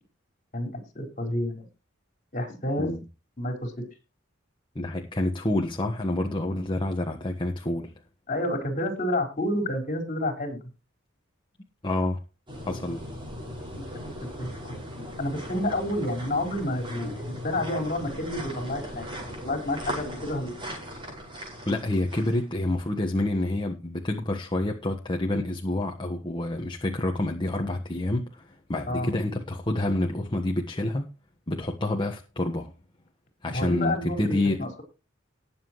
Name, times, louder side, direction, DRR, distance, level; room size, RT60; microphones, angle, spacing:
voice 1, 0.5-1.7 2.3-2.9 3.4-3.9 8.3-10.6 13.8-14.7 15.2-20.6 28.8-29.1 33.5-34.8, left 1 dB, 40° left, 4.6 m, -30 dB
voice 2, 4.7-7.9 11.8-12.2 12.7-13.0 21.7-31.1 31.5-32.7 33.4-34.7, left 1 dB, 25° left, 1.4 m, -28 dB
sound 1, 12.5-22.8 23.3-23.4, equal, 25° right, 5.5 m, -38 dB
20.0 x 7.4 x 3.1 m
head